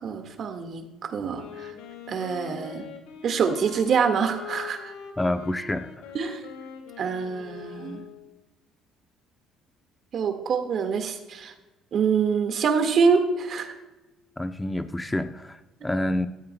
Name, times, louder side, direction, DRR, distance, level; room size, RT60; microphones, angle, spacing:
voice 1, 0.0-1.7 2.1-2.9 3.2-4.9 6.1-6.4 7.0-8.0 10.1-11.5 11.9-13.7, right 6 dB, 55° right, 6 dB, 1.7 m, -25 dB
Wind instrument woodwind instrument, 1.2-8.4, left 7 dB, 90° left, 1.9 m, -43 dB
voice 2, 5.2-6.1 14.4-16.3, left 1 dB, 15° left, 8 dB, 0.7 m, -28 dB
16.5 x 13.5 x 2.2 m, 1.1 s
supercardioid pair, 85°, 0 cm